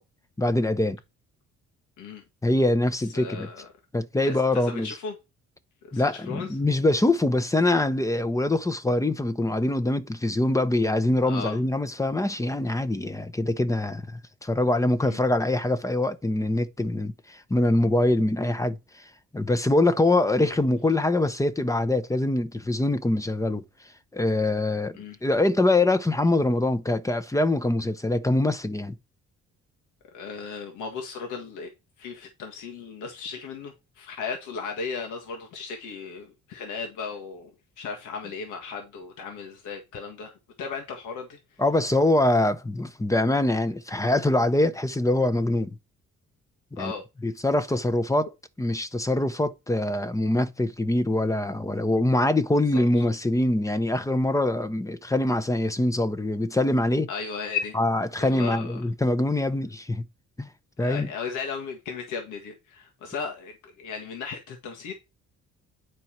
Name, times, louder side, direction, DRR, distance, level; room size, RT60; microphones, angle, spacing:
voice 1, 0.4-1.0 2.4-3.5 3.9-5.0 5.9-14.0 14.4-18.8 19.3-23.6 24.1-28.9 41.6-45.7 46.7-46.9 47.2-48.3 48.6-57.1 57.8-60.0 60.4-60.5 60.8-61.1, left 1 dB, 10° left, 0.8 m, -24 dB
voice 2, 3.1-3.7 4.2-5.1 5.8-6.5 7.6-7.7 11.2-11.6 15.0-15.2 25.0-25.2 30.1-31.7 32.0-37.5 37.8-40.3 40.6-41.4 46.8-47.0 52.7-52.8 57.1-57.8 58.2-58.8 60.8-64.9, left 5 dB, 85° left, 1.7 m, -36 dB
9.4 x 4.5 x 4.4 m
cardioid pair, 90°, 30 cm